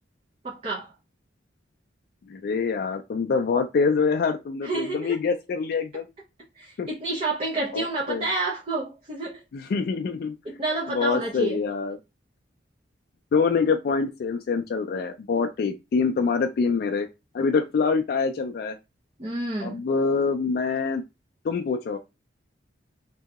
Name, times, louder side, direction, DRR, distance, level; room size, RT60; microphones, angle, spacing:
voice 1, 0.4-0.9 4.6-5.2 6.6-9.4 10.4-11.6 19.2-19.9, right 2 dB, 35° right, 0.7 m, -29 dB
voice 2, 2.3-6.1 6.8-6.9 7.7-8.3 9.5-10.4 10.9-12.0 13.3-17.1 17.3-18.8 19.6-21.0 21.4-22.0, left 5 dB, 55° left, 0.3 m, -25 dB
2.8 x 2.7 x 2.3 m
head